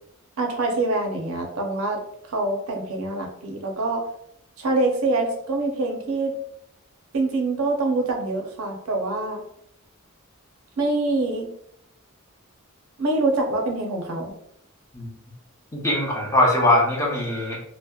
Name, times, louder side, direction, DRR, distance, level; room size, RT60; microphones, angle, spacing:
voice 1, 0.4-2.0 2.3-4.0 4.6-6.3 7.1-9.4 10.8-11.5 13.0-14.3, right 2 dB, 75° right, 2 dB, 0.5 m, -25 dB
voice 2, 15.7-17.6, left 1 dB, 15° left, -3 dB, 0.5 m, -21 dB
2.7 x 2.0 x 2.2 m, 0.72 s
head